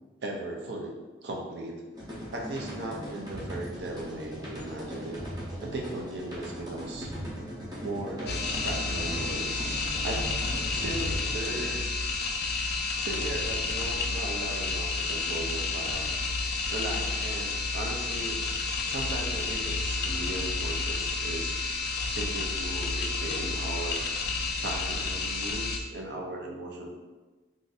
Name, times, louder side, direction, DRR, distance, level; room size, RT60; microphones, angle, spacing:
voice 1, 0.2-1.0 1.2-1.8 2.3-5.2 5.6-7.1 7.8-10.3 10.7-11.8 13.0-16.1 16.7-18.4 18.9-21.6 22.1-24.0 24.6-26.9, right 1 dB, 60° right, 0 dB, 0.6 m, -37 dB
sound 1, 1.9-11.8, equal, 20° right, 0.7 m, -39 dB
sound 2, 8.3-25.8, left 3 dB, 55° left, 0.3 m, -30 dB
2.5 x 2.5 x 4.0 m, 1.3 s
head